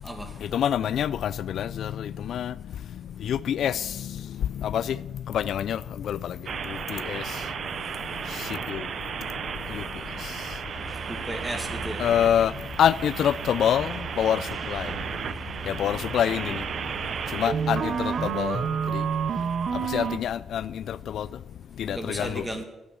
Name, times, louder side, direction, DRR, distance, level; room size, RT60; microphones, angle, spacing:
voice 1, 0.0-0.5 7.8-8.0 9.2-9.3 9.8-9.9 10.9-12.1 21.9-22.6, right 1 dB, 10° right, 2.2 m, -35 dB
voice 2, 0.5-2.5 3.2-4.2 4.6-5.0 5.3-6.4 6.7-7.2 8.7-8.9 9.7-9.8 12.0-12.5 12.8-14.9 15.7-16.6 17.3-18.6 18.9-19.0 19.7-21.3 21.8-22.4, left 9 dB, 70° left, 0.3 m, -26 dB
sound 1, 6.5-20.2, right 7 dB, 55° right, 0.7 m, -32 dB
sound 2, 10.6-18.3, right 5 dB, 25° right, 1.2 m, -42 dB
11.0 x 9.0 x 7.2 m
cardioid pair, 90°, 0 cm